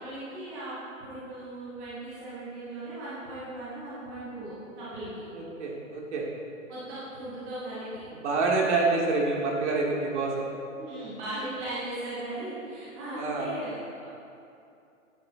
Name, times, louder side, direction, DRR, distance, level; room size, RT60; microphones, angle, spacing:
voice 1, 0.0-5.2 6.7-7.9 10.8-14.1, right 1 dB, 5° right, -10 dB, 0.3 m, -38 dB
voice 2, 5.3-6.3 8.2-10.4 13.2-13.5, right 3 dB, 55° right, -2 dB, 2.4 m, -27 dB
9.3 x 9.1 x 3.9 m, 2.6 s
hypercardioid pair, 135°, 40 cm